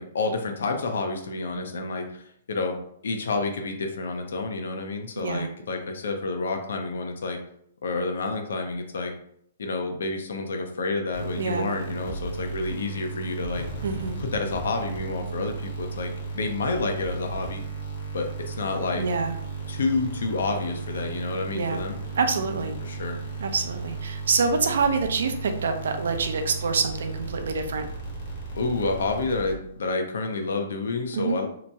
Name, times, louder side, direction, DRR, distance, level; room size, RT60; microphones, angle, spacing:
voice 1, 0.0-2.2 2.5-7.4 7.8-9.1 9.6-13.6 14.2-17.6 18.1-19.1 19.7-22.0 22.8-23.2 28.5-31.5, left 3 dB, 80° left, 4 dB, 0.5 m, -29 dB
voice 2, 5.2-5.5 11.4-11.7 13.8-14.2 18.9-19.4 21.5-21.8 22.2-22.8 23.4-27.9 31.1-31.4, right 4 dB, 75° right, 6 dB, 0.4 m, -26 dB
sound 1, 11.1-29.9, right 4 dB, 50° left, 0.9 m, -35 dB
2.8 x 2.2 x 2.7 m, 0.69 s
hypercardioid pair, 150°, 0 cm